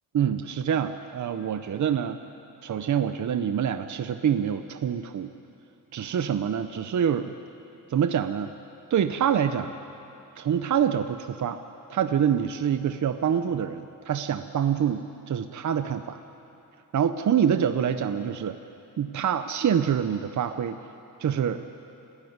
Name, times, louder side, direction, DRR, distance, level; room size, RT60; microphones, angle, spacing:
voice 1, 0.1-2.2 2.6-5.3 5.9-7.3 7.9-8.5 8.9-9.7 10.4-11.6 11.9-16.2 16.9-18.6 19.0-20.8 21.2-21.6, right 8 dB, 60° right, 9 dB, 0.7 m, -26 dB
30.0 x 13.5 x 9.5 m, 2.8 s
wide cardioid pair, 175°, 33 cm